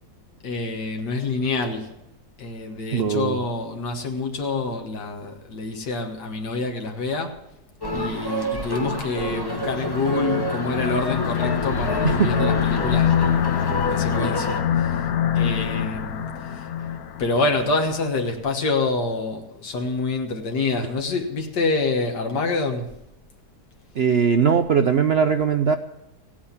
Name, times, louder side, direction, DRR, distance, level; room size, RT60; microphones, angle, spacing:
voice 1, 0.4-2.0 2.4-7.4 7.9-13.3 13.6-15.1 15.3-16.7 17.2-22.9, left 3 dB, 90° left, 2.0 m, -27 dB
voice 2, 2.9-3.4 12.0-12.3 24.0-25.8, right 6 dB, 60° right, 0.6 m, -20 dB
sound 1, 7.8-14.6, equal, 15° left, 1.3 m, -29 dB
sound 2, 9.1-17.7, left 8 dB, 65° left, 1.3 m, -25 dB
16.0 x 8.7 x 7.2 m
omnidirectional pair, 1.8 m